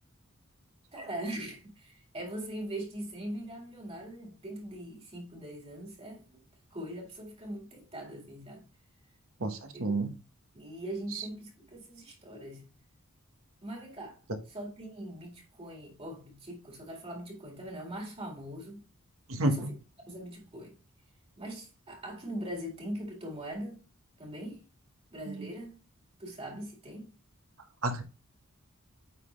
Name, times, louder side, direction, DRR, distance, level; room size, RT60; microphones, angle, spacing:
voice 1, 0.9-6.4 6.7-8.7 9.9-10.0 10.5-12.6 13.6-14.2 14.5-18.9 19.4-19.7 20.1-20.7 21.4-23.8 24.2-24.6 25.1-25.8 26.2-27.1, right 1 dB, 30° right, 2.0 m, -41 dB
voice 2, 9.4-10.1 11.1-11.2 19.3-19.7 25.3-25.5 27.8-28.0, right 2 dB, 75° right, 1.3 m, -31 dB
9.2 x 3.9 x 3.2 m
head